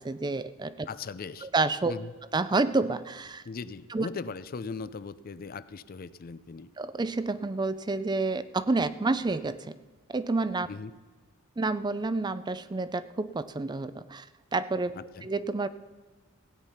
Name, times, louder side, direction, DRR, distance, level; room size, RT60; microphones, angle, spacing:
voice 1, 0.0-0.9 1.4-1.9 2.3-3.4 3.9-4.1 6.8-9.8 10.1-10.7 11.6-14.3 14.5-14.9 15.2-15.7, right 3 dB, 20° right, 14 dB, 0.4 m, -29 dB
voice 2, 0.9-1.5 1.9-2.1 3.5-6.7 10.7-10.9 14.9-15.3, left 4 dB, 45° left, 15 dB, 0.4 m, -39 dB
16.0 x 9.0 x 5.7 m, 1.3 s
head